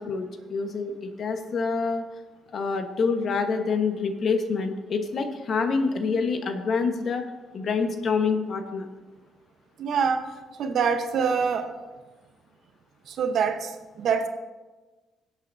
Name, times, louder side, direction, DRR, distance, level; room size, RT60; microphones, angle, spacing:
voice 1, 0.0-2.0 2.5-7.2 7.5-8.9, left 4 dB, 55° left, 6 dB, 1.2 m, -26 dB
voice 2, 9.8-10.3 10.6-11.7 13.1-14.3, right 6 dB, 65° right, 7 dB, 1.0 m, -25 dB
18.0 x 8.1 x 2.7 m, 1.2 s
cardioid pair, 90°, 0 cm